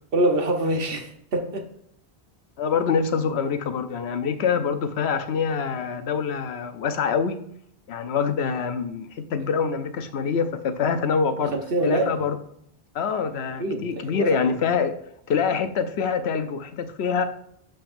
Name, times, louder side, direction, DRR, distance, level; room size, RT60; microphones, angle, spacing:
voice 1, 0.1-1.7 11.4-12.1 13.6-14.6, right 1 dB, 60° right, 5 dB, 1.2 m, -25 dB
voice 2, 2.6-7.4 7.9-11.5 11.8-12.4 12.9-15.0 15.3-17.3, left 6 dB, 80° left, 10 dB, 1.0 m, -25 dB
11.5 x 5.2 x 2.6 m, 0.70 s
omnidirectional pair, 1.1 m